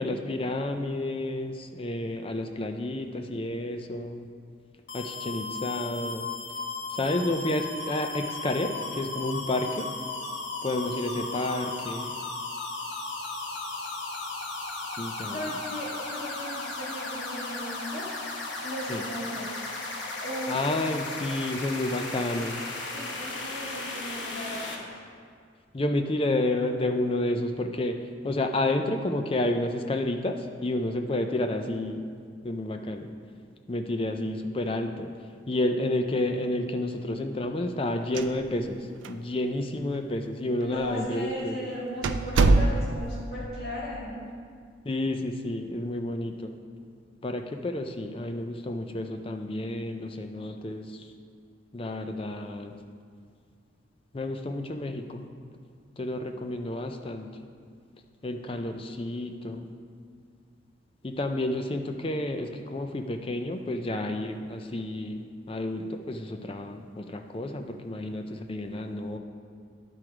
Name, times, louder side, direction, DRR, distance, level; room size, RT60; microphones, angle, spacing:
voice 1, 0.0-4.3 4.9-6.3 6.9-9.9 10.6-12.2 15.0-15.5 18.9-19.0 20.5-22.6 25.7-32.1 32.4-33.1 33.7-35.1 35.5-41.7 44.8-46.6 47.2-51.1 51.7-52.7 54.1-55.2 56.0-57.3 58.2-59.7 61.0-69.2, left 1 dB, 30° left, 5 dB, 0.4 m, -30 dB
sound 1, 4.9-24.8, left 3 dB, 70° left, 1.1 m, -36 dB
voice 2, 15.3-18.1 18.6-19.7 20.2-20.6 22.9-24.8 40.6-44.3, equal, 50° left, -9 dB, 2.0 m, -36 dB
sound 2, 38.0-38.8 39.0-39.1 39.9-40.0 40.8-41.0 41.4-41.5 42.0-43.2, right 2 dB, 75° right, 0.4 m, -23 dB
10.5 x 4.6 x 4.9 m, 2.1 s
head